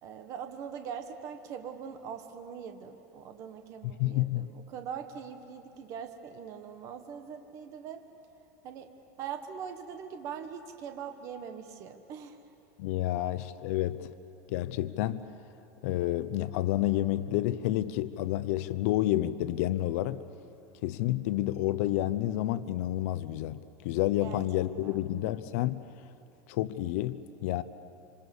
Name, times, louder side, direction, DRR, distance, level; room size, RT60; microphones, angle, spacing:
voice 1, 0.0-8.0 8.6-8.9 9.2-12.4 24.2-25.1, right 7 dB, 35° right, 6 dB, 1.3 m, -42 dB
voice 2, 4.0-4.5 12.8-14.1 14.5-15.3 15.8-20.2 20.8-25.8 26.5-27.6, left 14 dB, 60° left, 14 dB, 0.8 m, -29 dB
26.5 x 26.5 x 7.1 m, 2.8 s
supercardioid pair, 170°, 9 cm